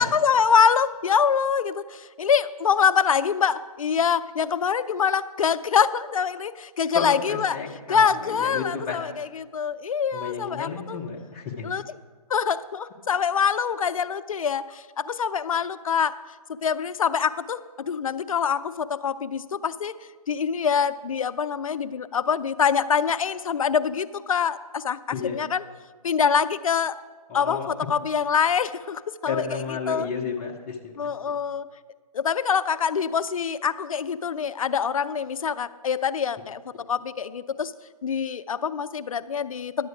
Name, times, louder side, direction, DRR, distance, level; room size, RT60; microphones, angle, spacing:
voice 1, 0.0-7.6 7.9-9.3 9.5-11.0 11.6-11.8 12.3-16.2 16.5-19.9 20.3-25.6 26.0-27.0 27.3-29.4 29.9-30.1 31.0-31.7 32.1-37.7 38.0-39.9, left 6 dB, 60° left, 14 dB, 0.4 m, -25 dB
voice 2, 6.9-9.0 10.1-11.9 25.1-25.4 27.3-27.9 29.3-31.4, left 5 dB, 20° left, -1 dB, 0.8 m, -32 dB
11.0 x 8.0 x 4.8 m, 1.5 s
figure-of-eight pair, 140°, 19 cm